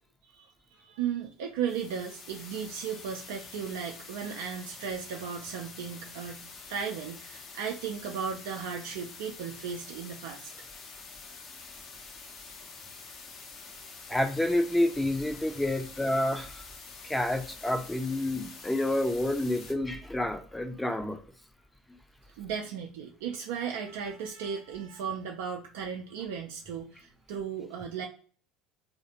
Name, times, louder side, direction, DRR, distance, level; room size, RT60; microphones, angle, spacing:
voice 1, 0.3-10.5 12.8-13.1 13.4-14.2 22.4-28.1, right 7 dB, 70° right, 0.4 m, -36 dB
sound 1, 1.7-19.7, left 4 dB, 50° left, 0.7 m, -47 dB
voice 2, 14.1-16.6 17.0-21.2, left 1 dB, 10° left, 0.5 m, -29 dB
2.4 x 2.1 x 2.8 m
hypercardioid pair, 75°, 0 cm